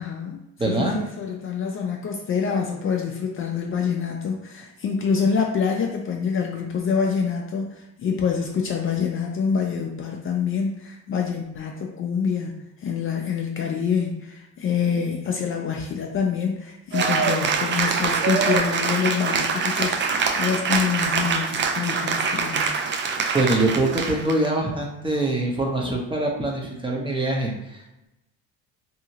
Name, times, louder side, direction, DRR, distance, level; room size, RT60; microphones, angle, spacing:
voice 1, 0.0-22.7, left 6 dB, 40° left, 1 dB, 0.4 m, -26 dB
voice 2, 0.6-1.0 23.3-27.5, right 2 dB, 15° right, -1 dB, 0.8 m, -23 dB
Cheering / Applause, 16.9-24.5, right 5 dB, 35° right, 0.4 m, -24 dB
2.8 x 2.7 x 2.8 m, 0.91 s
supercardioid pair, 85°, 35 cm